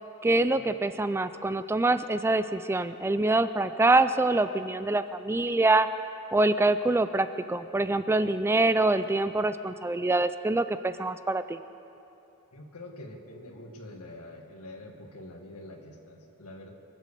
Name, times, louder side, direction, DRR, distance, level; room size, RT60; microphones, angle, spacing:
voice 1, 0.2-5.9 6.3-11.6, right 2 dB, 10° right, 12 dB, 0.3 m, -25 dB
voice 2, 12.5-16.7, left 1 dB, 85° left, 3 dB, 1.8 m, -45 dB
24.5 x 8.2 x 6.8 m, 2.9 s
head